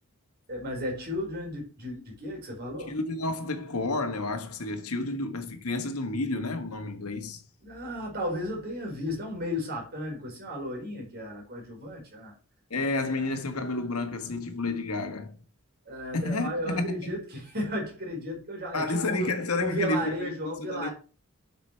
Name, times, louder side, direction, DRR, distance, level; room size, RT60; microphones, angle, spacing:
voice 1, 0.5-3.0 7.6-12.3 15.9-19.3 19.6-20.9, equal, 50° right, 4.2 m, -34 dB
voice 2, 2.9-7.4 12.7-15.4 16.1-17.1 18.7-20.9, left 2 dB, 85° left, 1.5 m, -30 dB
8.0 x 6.0 x 4.5 m
head